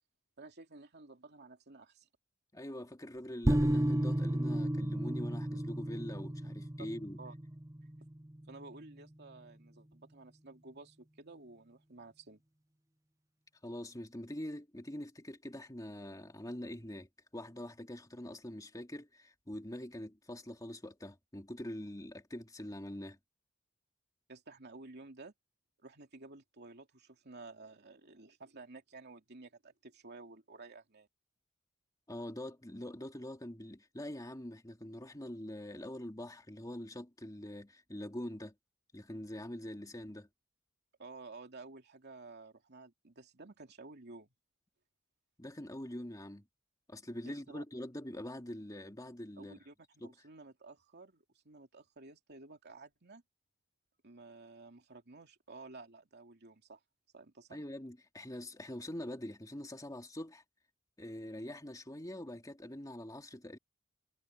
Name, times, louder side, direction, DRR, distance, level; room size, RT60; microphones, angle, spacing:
voice 1, 0.4-2.1 6.8-6.9 7.2-7.3 8.5-12.4 24.3-25.3 25.8-31.1 41.0-44.3 47.2-47.6 49.4-49.7 50.0-53.2 54.0-56.8 57.1-57.6, right 3 dB, 55° right, 2.9 m, -53 dB
voice 2, 2.5-7.2 13.6-23.2 32.1-38.5 38.9-40.3 45.4-46.4 46.9-49.6 50.0-50.1 57.5-60.4 61.0-63.6, left 1 dB, 15° left, 2.7 m, -44 dB
sound 1, 3.5-8.7, right 1 dB, 15° right, 0.7 m, -33 dB
head